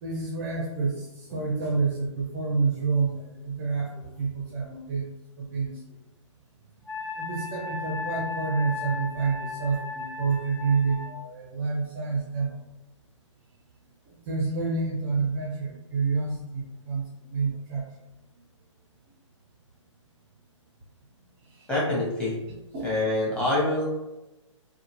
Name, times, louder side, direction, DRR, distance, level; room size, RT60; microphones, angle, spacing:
voice 1, 0.0-5.1 5.4-5.8 7.2-12.7 14.1-17.9 21.5-21.7 22.7-22.9, right 4 dB, 30° right, -3 dB, 0.5 m, -28 dB
Wind instrument woodwind instrument, 6.9-11.1, left 4 dB, 60° left, 1.0 m, -36 dB
voice 2, 21.7-22.4 22.8-23.9, left 2 dB, 5° left, -8 dB, 0.9 m, -25 dB
2.8 x 2.0 x 2.8 m, 0.99 s
figure-of-eight pair, 125°, 16 cm